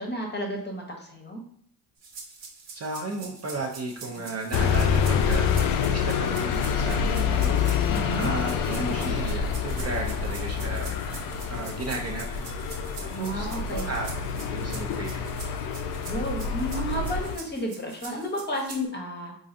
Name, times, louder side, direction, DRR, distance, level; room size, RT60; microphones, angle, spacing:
voice 1, 0.0-1.4 4.2-4.3 7.9-8.3 13.0-13.9 16.1-19.4, equal, 20° left, 1 dB, 0.8 m, -32 dB
sound 1, 2.0-18.8, right 4 dB, 70° right, 1.2 m, -44 dB
voice 2, 2.7-5.5 5.9-7.6 8.2-11.0 11.5-12.5 13.0-14.1 14.5-15.4, right 3 dB, 30° right, 0 dB, 0.5 m, -34 dB
sound 2, 4.5-17.4, left 6 dB, 45° left, 0.4 m, -27 dB
3.9 x 2.5 x 2.5 m, 0.63 s
supercardioid pair, 80°, 50 cm